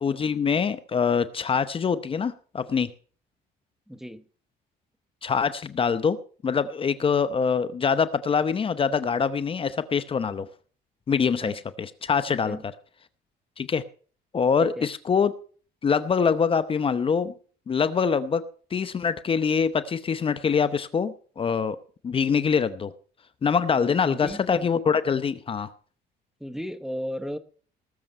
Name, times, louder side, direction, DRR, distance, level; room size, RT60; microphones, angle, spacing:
voice 1, 0.0-2.9 5.2-6.2 6.4-10.5 11.1-12.6 13.6-13.8 14.3-15.3 15.8-17.3 17.7-18.4 18.7-21.8 22.0-22.9 23.4-25.7, left 6 dB, 30° left, 13 dB, 0.8 m, -24 dB
voice 2, 3.9-4.2 11.4-11.6 12.3-12.6 14.6-14.9 23.8-24.4 26.4-27.4, equal, ahead, 8 dB, 0.9 m, -35 dB
19.0 x 7.1 x 5.4 m, 0.43 s
cardioid pair, 110°, 17 cm